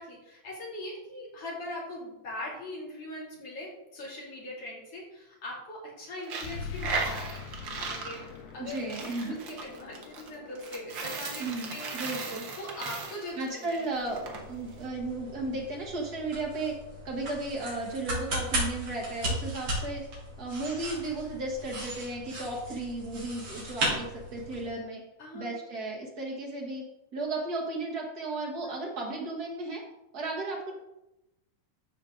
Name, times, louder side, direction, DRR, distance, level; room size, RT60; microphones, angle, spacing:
voice 1, 0.0-7.3 7.8-8.3 8.5-8.8 9.3-12.0 12.6-13.9 14.2-14.4 25.2-25.5 28.6-28.7, left 1 dB, 45° left, -4 dB, 3.5 m, -41 dB
Coin (dropping), 6.2-14.4, right 4 dB, 70° right, 1.1 m, -37 dB
sound 1, 6.4-21.5, left 6 dB, 80° left, 2.5 m, -47 dB
voice 2, 8.6-9.3 11.4-12.4 13.4-14.2 14.5-16.7 17.0-20.0 20.4-25.0 25.3-26.8 27.1-29.8 30.1-30.7, right 2 dB, 85° right, -1 dB, 0.8 m, -34 dB
sound 2, 13.9-24.7, right 1 dB, 50° right, 4.1 m, -36 dB
14.5 x 5.1 x 3.8 m, 0.92 s
omnidirectional pair, 3.8 m